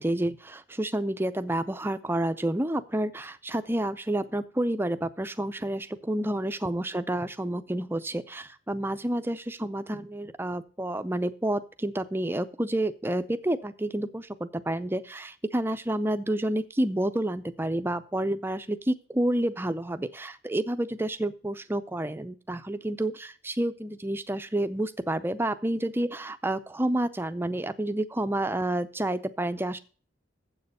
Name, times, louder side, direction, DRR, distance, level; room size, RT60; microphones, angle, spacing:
voice 1, 0.0-29.8, right 1 dB, 10° right, 11 dB, 0.5 m, -29 dB
7.6 x 6.6 x 6.8 m, 0.39 s
head